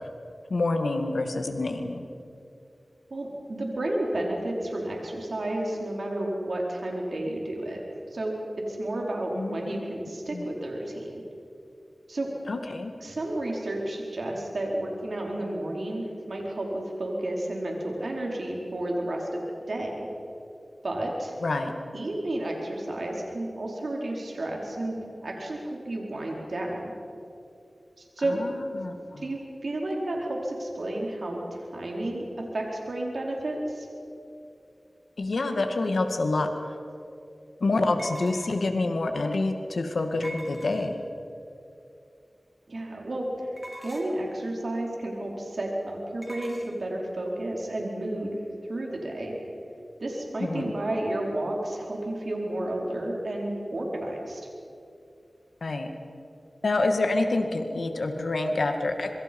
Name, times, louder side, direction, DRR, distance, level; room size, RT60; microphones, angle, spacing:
voice 1, 0.5-2.1 9.4-9.8 10.3-10.4 12.5-12.9 21.4-21.7 28.3-29.2 35.2-36.5 37.6-41.0 50.4-50.7 55.6-55.9 56.6-59.1, left 2 dB, 85° left, 5 dB, 2.1 m, -27 dB
voice 2, 3.1-7.8 8.1-11.1 12.1-12.3 13.0-19.3 19.7-20.1 20.8-21.4 21.9-25.0 25.2-26.9 28.0-28.4 29.2-32.3 32.5-33.9 42.7-43.3 43.8-48.4 48.7-49.3 50.0-54.4, right 1 dB, 75° right, -1 dB, 4.7 m, -31 dB
sound 1, 38.0-38.8 40.2-41.1 43.6-44.3 46.2-46.7, right 1 dB, 15° right, 3.2 m, -43 dB
26.0 x 23.5 x 5.5 m, 2.6 s
cardioid pair, 40°, 0 cm